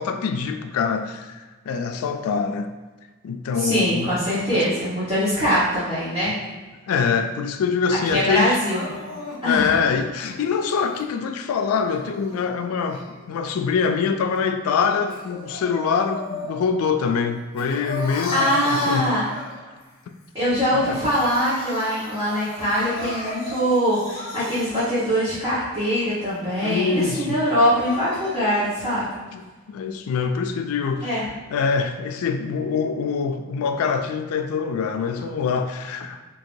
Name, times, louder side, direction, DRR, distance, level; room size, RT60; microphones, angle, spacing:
voice 1, 0.0-2.8 3.2-4.1 4.5-4.7 6.3-6.4 6.9-8.6 9.4-19.1 20.7-21.0 26.6-27.4 29.3-31.2 31.5-36.2, left 5 dB, 85° left, 7 dB, 0.3 m, -24 dB
voice 2, 3.5-6.3 7.9-8.9 9.4-9.7 18.3-19.2 20.3-29.1 31.0-31.3, equal, 20° right, -14 dB, 1.2 m, -22 dB
Crying sobbing, 8.6-11.1 11.7-13.5 13.9-16.8 17.2-19.8 20.2-20.3 20.6-25.5 26.0-26.1 26.7-26.8 27.5-28.4, left 1 dB, 55° left, 1.2 m, -36 dB
4.6 x 2.8 x 2.6 m, 1.3 s
head